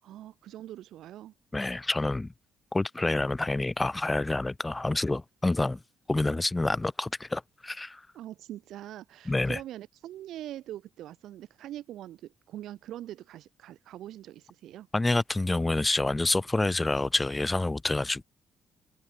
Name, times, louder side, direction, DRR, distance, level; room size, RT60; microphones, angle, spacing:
voice 1, 0.0-1.3 8.1-14.9, right 13 dB, 70° right, 3.8 m, -43 dB
voice 2, 1.5-2.3 2.7-5.8 6.1-8.0 9.3-9.6 14.9-18.2, left 2 dB, 20° left, 1.0 m, -28 dB
open air
hypercardioid pair, 45°, 0 cm